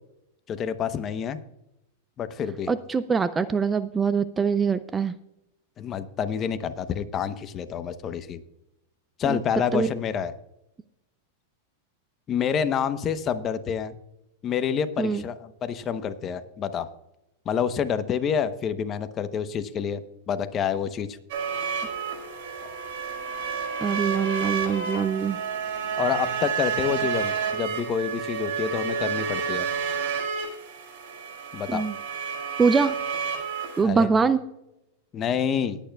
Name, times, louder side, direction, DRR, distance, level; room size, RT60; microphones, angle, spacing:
voice 1, 0.5-1.4 2.2-2.7 5.8-8.4 9.2-10.3 12.3-14.0 14.4-16.9 17.5-21.2 22.6-22.7 26.0-29.7 31.5-31.9 33.8-34.1 35.1-35.8, left 7 dB, 30° left, 11 dB, 0.8 m, -28 dB
voice 2, 2.7-5.2 9.3-9.4 9.7-9.9 15.0-15.2 23.8-25.4 31.7-31.9 32.6-33.0 33.8-34.4, right 5 dB, 15° right, 14 dB, 0.4 m, -23 dB
sound 1, 21.3-33.8, right 6 dB, 60° right, 4.6 m, -30 dB
20.0 x 8.9 x 2.3 m, 0.87 s
supercardioid pair, 135°, 0 cm